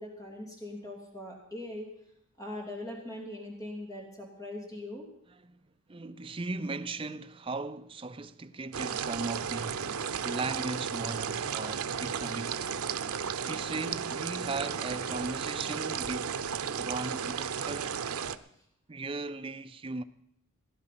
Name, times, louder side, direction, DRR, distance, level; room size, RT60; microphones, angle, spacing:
voice 1, 0.0-1.9 2.4-5.1 6.3-6.4, left 1 dB, 15° left, 2.9 m, -41 dB
voice 2, 5.9-9.9 10.2-12.6 13.4-16.4 16.8-17.9 18.9-20.0, right 3 dB, 25° right, 0.5 m, -37 dB
sound 1, 8.7-18.4, right 7 dB, 85° right, 0.7 m, -34 dB
17.0 x 11.0 x 5.9 m
head